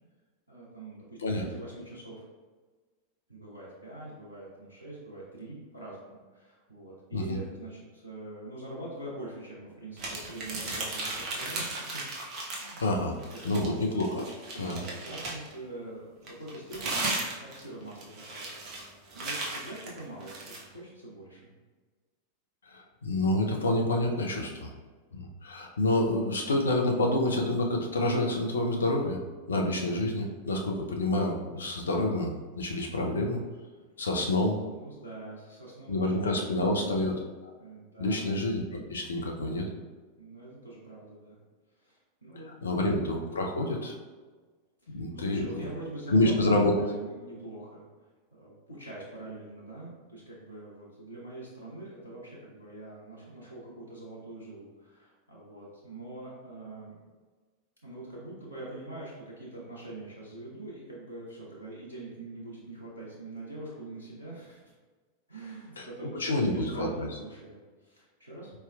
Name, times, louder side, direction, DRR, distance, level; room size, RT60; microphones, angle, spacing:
voice 1, 0.5-2.2 3.3-12.0 12.5-12.8 13.6-13.8 14.5-18.6 19.1-21.5 34.6-37.0 37.6-38.5 40.2-41.4 41.8-42.5 42.8-43.1 44.8-47.8 48.3-57.0 57.8-64.7 65.3-68.5, right 2 dB, 90° right, -7 dB, 0.9 m, -44 dB
sound 1, 10.0-12.9 13.2-15.5 16.3-20.6, right 2 dB, 40° right, 0.8 m, -36 dB
voice 2, 12.8-13.2 13.4-14.2 14.5-14.8 22.6-24.7 25.1-29.2 29.5-33.4 34.0-34.6 35.9-37.1 37.4-37.5 38.0-38.6 38.9-39.7 42.6-44.0 44.9-45.6 46.1-46.7 65.8-65.9 66.1-67.1, left 1 dB, 70° left, 1 dB, 0.6 m, -28 dB
4.3 x 3.4 x 2.3 m, 1.4 s
figure-of-eight pair, 90°, 0 cm